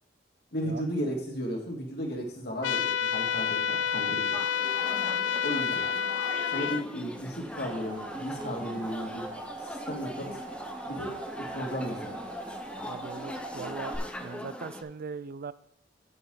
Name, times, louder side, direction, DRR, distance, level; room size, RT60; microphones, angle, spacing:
voice 1, 0.5-4.4 5.4-5.8 6.5-9.3 9.6-10.4 10.8-11.2 11.5-12.2, equal, 60° left, 0 dB, 2.4 m, -34 dB
sound 1, 2.6-6.8, left 7 dB, 80° left, 0.4 m, -29 dB
sound 2, 4.3-14.8, equal, 5° left, 0.8 m, -41 dB
sound 3, 7.3-14.0, right 3 dB, 25° right, 1.5 m, -42 dB
voice 2, 12.8-14.0 14.2-15.5, right 5 dB, 55° right, 16 dB, 0.4 m, -39 dB
8.6 x 8.4 x 4.0 m, 0.73 s
head